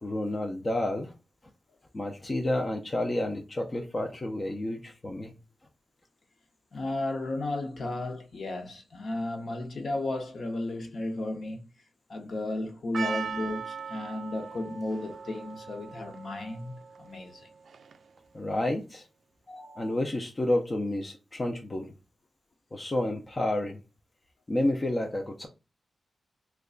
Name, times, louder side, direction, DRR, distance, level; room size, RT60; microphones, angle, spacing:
voice 1, 0.0-1.1 1.9-5.3 18.3-19.1 19.8-21.9 22.7-23.8 24.5-25.5, left 1 dB, 25° left, 0.4 m, -30 dB
voice 2, 6.7-11.7 12.1-17.5 19.5-20.0, left 2 dB, 50° left, 0.8 m, -34 dB
Percussion, 12.9-18.2, right 6 dB, 70° right, 0.3 m, -39 dB
3.2 x 2.2 x 3.7 m
wide cardioid pair, 135°, 0 cm